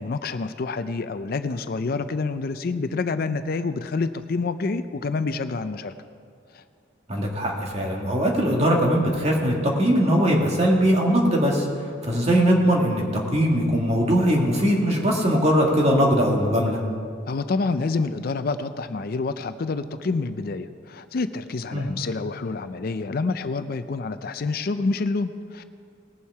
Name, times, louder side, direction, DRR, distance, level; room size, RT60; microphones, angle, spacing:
voice 1, 0.0-5.9 6.5-6.6 17.3-25.6, left 3 dB, 55° left, 11 dB, 0.5 m, -27 dB
voice 2, 7.1-13.0 13.3-16.8 21.7-21.9, equal, 35° right, -1 dB, 1.9 m, -21 dB
19.5 x 7.2 x 4.7 m, 2.3 s
head